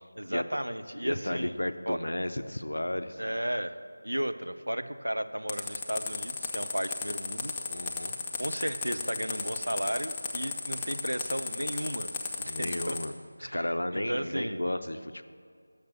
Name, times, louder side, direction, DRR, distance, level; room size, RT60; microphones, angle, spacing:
voice 1, 0.2-1.6 1.9-2.0 3.2-3.8 4.0-7.5 8.4-12.1 12.4-13.0 13.4-14.6, equal, 80° right, 10 dB, 0.5 m, -34 dB
voice 2, 1.0-3.2 7.7-8.2 12.5-13.1 13.4-15.2, left 1 dB, 70° left, 10 dB, 0.5 m, -33 dB
sound 1, 5.5-13.0, left 4 dB, 15° left, 0.4 m, -34 dB
6.6 x 6.5 x 7.0 m, 2.2 s
figure-of-eight pair, 165°, 0 cm